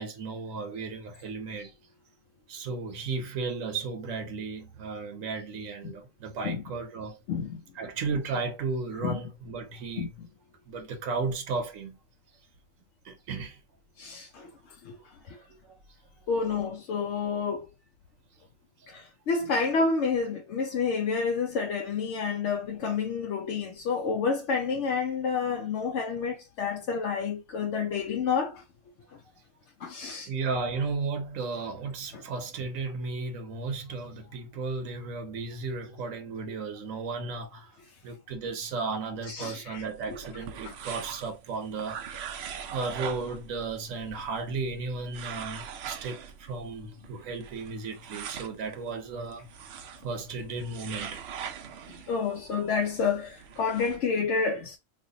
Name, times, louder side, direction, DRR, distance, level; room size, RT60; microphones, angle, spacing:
voice 1, 0.0-1.7 2.5-7.2 7.7-10.2 10.7-12.0 13.0-13.6 15.6-15.8 30.3-37.7 38.0-42.3 42.7-49.5 50.0-51.2, right 4 dB, 85° right, 1.2 m, -34 dB
voice 2, 7.3-7.6 9.0-9.2 10.0-10.1 14.0-14.5 14.8-14.9 15.3-15.4 16.3-17.7 18.9-28.6 29.8-30.3 32.1-32.2 39.3-40.2 40.6-40.7 52.1-54.8, left 5 dB, 70° left, 0.9 m, -29 dB
sound 1, 39.7-54.0, right 8 dB, 65° right, 0.7 m, -43 dB
3.2 x 2.4 x 3.7 m
omnidirectional pair, 1.3 m